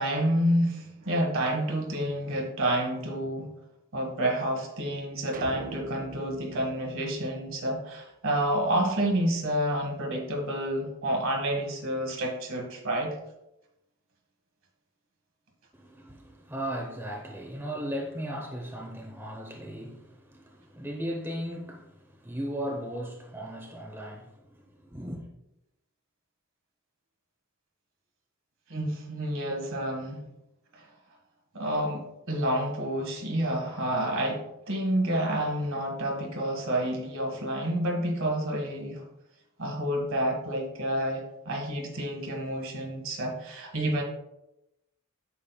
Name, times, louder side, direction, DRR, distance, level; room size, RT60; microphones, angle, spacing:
voice 1, 0.0-3.5 3.9-13.2 28.7-30.2 30.7-30.8 31.5-39.0 39.6-44.0, right 1 dB, 60° right, 1.6 m, -29 dB
sound 1, 5.3-7.9, right 3 dB, 40° right, 0.6 m, -45 dB
voice 2, 15.7-25.3, equal, 10° right, 0.8 m, -37 dB
8.6 x 7.4 x 2.3 m
head